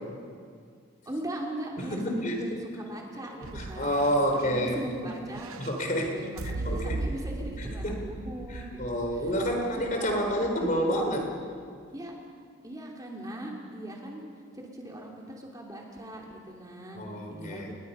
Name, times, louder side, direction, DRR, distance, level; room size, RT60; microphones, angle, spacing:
voice 1, 1.0-3.9 4.3-5.5 6.0-11.0 11.9-12.1 12.6-14.3 14.5-17.0 17.3-17.7, right 1 dB, 15° right, -1 dB, 2.8 m, -40 dB
voice 2, 1.8-2.6 3.5-4.8 5.6-6.2 6.6-7.0 7.6-7.9 8.5-11.3 16.9-17.7, equal, 40° left, 2 dB, 3.7 m, -29 dB
sound 1, 3.4-11.4, right 2 dB, 90° right, 0.8 m, -39 dB
29.0 x 21.0 x 5.6 m, 2.2 s
head